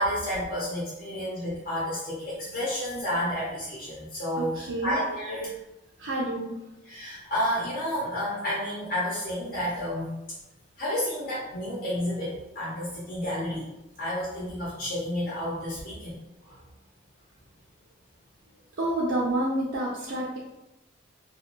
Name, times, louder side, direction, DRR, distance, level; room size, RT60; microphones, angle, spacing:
voice 1, 0.0-5.5 6.8-10.1 10.8-13.6 14.0-16.1 16.4-16.6, equal, 45° left, -9 dB, 0.9 m, -30 dB
voice 2, 4.4-5.0 6.0-6.6 18.8-20.4, right 1 dB, 70° right, -6 dB, 0.5 m, -29 dB
2.6 x 2.4 x 3.0 m, 0.94 s
head